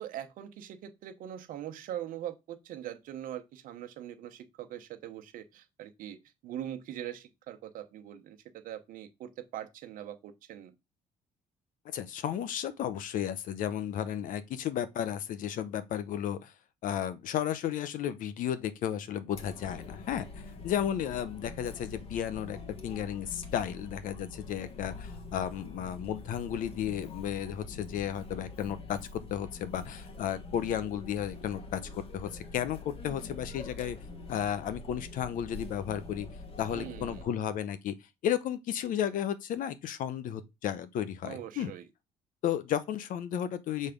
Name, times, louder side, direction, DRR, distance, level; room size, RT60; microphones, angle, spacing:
voice 1, 0.0-10.7 36.7-37.3 41.2-41.8, right 11 dB, 70° right, 1.0 m, -42 dB
voice 2, 11.9-16.5 16.8-22.6 22.8-34.0 34.3-36.3 36.6-37.9 38.2-41.7 42.4-43.9, left 10 dB, 70° left, 0.9 m, -33 dB
Chatter, 19.3-37.2, left 3 dB, 40° left, 1.6 m, -45 dB
6.5 x 3.5 x 5.1 m
cardioid pair, 85°, 14 cm